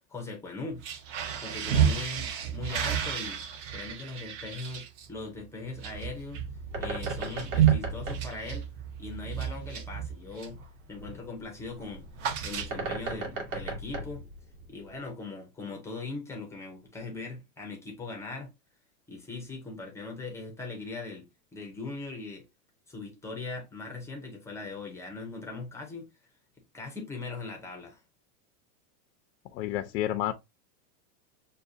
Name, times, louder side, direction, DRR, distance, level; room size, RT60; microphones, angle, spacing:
voice 1, 0.1-0.8 1.4-3.4 3.7-6.4 6.8-8.7 9.0-10.6 10.9-12.1 12.4-14.2 14.7-18.5 19.1-21.3 21.5-22.4 22.9-26.1 26.7-28.0, left 3 dB, 5° left, 0.5 m, -40 dB
sound 1, 0.7-10.7 11.0-11.3 11.5-13.1, right 9 dB, 45° right, 0.9 m, -31 dB
Bird, 5.9-15.1, right 2 dB, 60° right, 2.1 m, -38 dB
voice 2, 29.5-30.3, left 13 dB, 85° left, 0.7 m, -30 dB
6.4 x 2.2 x 2.6 m
supercardioid pair, 155°, 48 cm